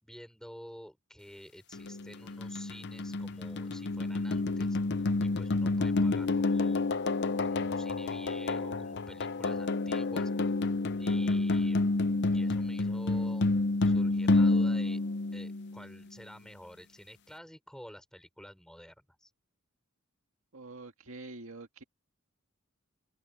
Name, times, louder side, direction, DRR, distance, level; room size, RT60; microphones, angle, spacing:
voice 1, 0.0-6.8 7.5-10.6 11.0-11.9 12.3-13.5 13.8-15.0 15.3-19.3, equal, 5° left, 6.0 m, -50 dB
sound 1, 1.7-15.9, left 3 dB, 55° left, 0.6 m, -29 dB
voice 2, 20.5-21.8, right 3 dB, 75° right, 2.0 m, -46 dB
head